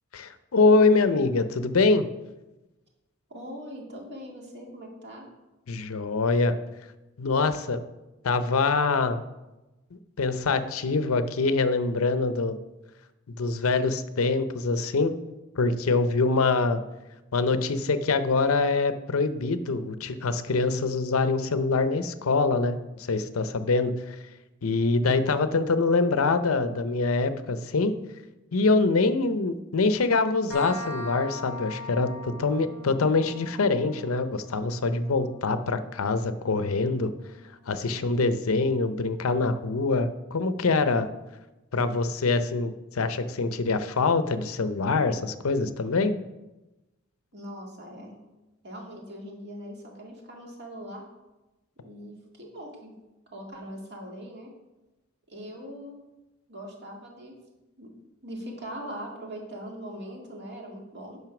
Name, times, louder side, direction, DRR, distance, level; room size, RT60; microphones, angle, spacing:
voice 1, 0.1-2.1 5.7-6.6 7.2-7.8 8.2-9.2 10.2-12.6 13.3-15.1 15.6-16.8 17.3-24.2 24.6-27.9 28.5-37.1 37.7-41.1 41.7-46.1, left 3 dB, 80° left, 11 dB, 0.6 m, -24 dB
voice 2, 3.3-5.3 47.3-48.2 48.6-51.0 51.8-52.9 53.3-54.5 55.3-56.0 56.5-57.3 57.8-57.9 58.2-61.2, equal, 50° right, -1 dB, 2.1 m, -41 dB
sound 1, 30.5-37.9, left 2 dB, 90° right, 3.3 m, -42 dB
9.1 x 5.6 x 5.9 m, 1.0 s
head